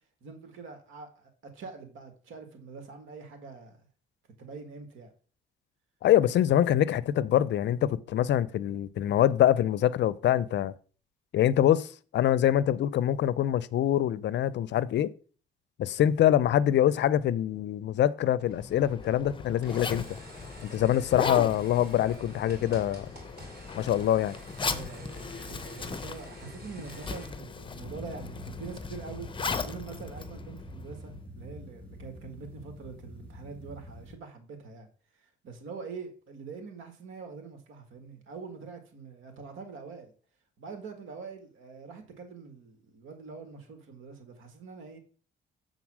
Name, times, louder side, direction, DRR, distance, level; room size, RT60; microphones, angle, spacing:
voice 1, 0.2-3.8 4.4-5.1 24.6-29.3 29.6-34.9 35.2-40.1 40.6-45.0, right 5 dB, 80° right, 1.6 m, -44 dB
voice 2, 6.0-10.7 11.3-15.1 15.8-20.2 20.6-23.1 23.8-24.4, left 11 dB, 60° left, 0.5 m, -24 dB
Zipper (clothing), 18.5-31.1, left 4 dB, 25° left, 0.7 m, -38 dB
sound 1, 18.5-27.3, right 2 dB, 50° right, 3.4 m, -51 dB
sound 2, 27.8-34.2, left 1 dB, 10° left, 3.1 m, -45 dB
7.2 x 3.9 x 6.1 m
cardioid pair, 90°, 20 cm